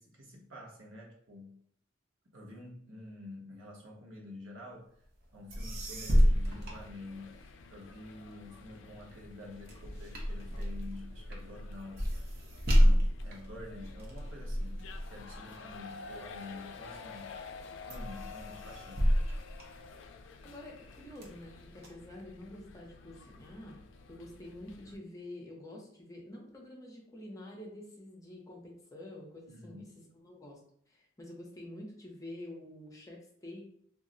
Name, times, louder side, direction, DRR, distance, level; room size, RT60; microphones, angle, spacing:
voice 1, 0.0-1.6 2.3-4.9 5.3-12.1 12.7-17.3 17.9-19.1 29.5-30.0, left 2 dB, 90° right, -1 dB, 0.8 m, -48 dB
sound 1, 5.2-5.3 5.5-7.6 8.1-16.7 17.2-17.6 17.9-20.4 20.9-21.9, equal, 50° right, 0.6 m, -30 dB
sound 2, 6.1-25.0, left 4 dB, 70° left, 0.3 m, -51 dB
voice 2, 20.4-30.6 30.9-33.6, left 1 dB, 15° left, -1 dB, 0.6 m, -48 dB
2.3 x 2.0 x 3.7 m, 0.67 s
head